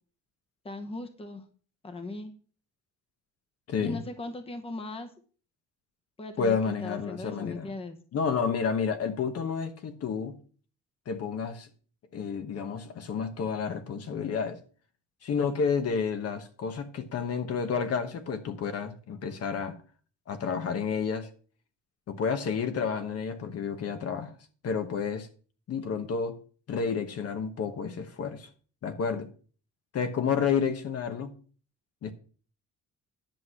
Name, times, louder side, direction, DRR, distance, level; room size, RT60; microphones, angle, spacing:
voice 1, 0.6-1.4 1.8-2.3 3.8-5.1 6.2-8.0, left 2 dB, 20° left, 1.1 m, -38 dB
voice 2, 3.7-4.0 6.4-7.7 8.1-10.3 11.1-11.7 12.1-14.6 15.2-19.8 20.3-21.3 22.1-24.4 24.6-25.3 25.7-26.4 26.7-28.5 28.8-29.3 29.9-31.3 32.0-32.1, left 6 dB, 55° left, 1.2 m, -30 dB
10.5 x 6.3 x 5.7 m
cardioid pair, 155°, 30 cm